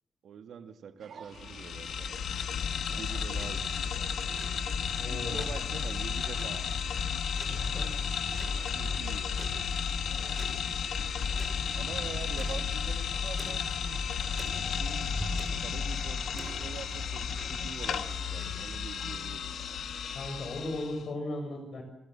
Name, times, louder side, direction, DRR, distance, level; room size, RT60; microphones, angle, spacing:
voice 1, 0.2-2.6 2.9-4.0 5.1-6.7 7.0-7.1 8.7-9.5 11.7-14.1 14.6-19.5, right 7 dB, 75° right, 7 dB, 2.0 m, -45 dB
sound 1, 1.0-20.3, right 6 dB, 55° right, 2.0 m, -52 dB
sound 2, 1.3-21.0, left 7 dB, 80° left, 1.5 m, -33 dB
sound 3, 1.9-18.8, right 2 dB, 15° right, 4.7 m, -45 dB
voice 2, 5.0-5.5 7.5-8.0 20.1-21.8, left 2 dB, 55° left, 6 dB, 7.1 m, -37 dB
28.5 x 20.0 x 7.6 m, 0.82 s
wide cardioid pair, 165°, 0 cm